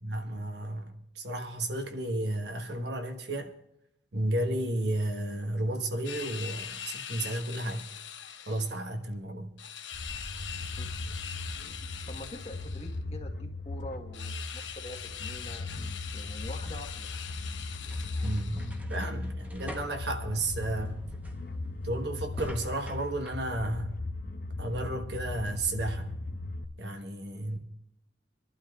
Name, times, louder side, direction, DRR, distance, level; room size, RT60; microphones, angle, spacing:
voice 1, 0.0-3.5 4.1-7.8 8.5-9.5 18.2-21.0 21.8-24.0 24.6-26.1 26.8-27.6, right 1 dB, 65° right, 1.2 m, -33 dB
sound 1, 6.0-8.7 9.6-13.0 14.1-18.8, left 9 dB, 80° left, 0.9 m, -42 dB
sound 2, 9.9-26.6, left 2 dB, 50° left, 0.8 m, -38 dB
voice 2, 12.1-15.7 16.1-17.1, left 1 dB, 35° left, 1.3 m, -44 dB
sound 3, 17.0-23.5, right 1 dB, 10° right, 1.0 m, -47 dB
25.5 x 11.5 x 2.4 m
head